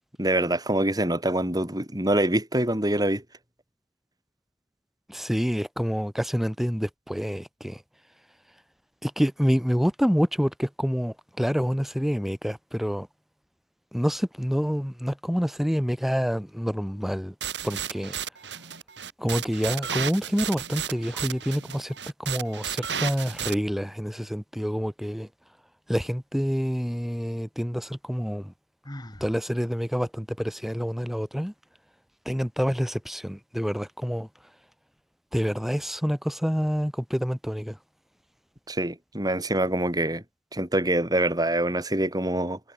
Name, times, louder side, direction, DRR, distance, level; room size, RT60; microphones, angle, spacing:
voice 1, 0.2-3.2 38.7-40.2 40.5-42.6, right 1 dB, 20° right, 5.0 m, -25 dB
voice 2, 5.1-7.8 9.0-13.1 13.9-17.3 17.6-18.1 19.2-25.3 25.9-28.5 29.2-31.5 32.2-34.3 35.3-37.8, equal, ahead, 2.7 m, -27 dB
sound 1, 17.4-23.5, right 8 dB, 85° right, 7.9 m, -33 dB
Sigh, 28.8-29.4, equal, 25° left, 5.2 m, -40 dB
head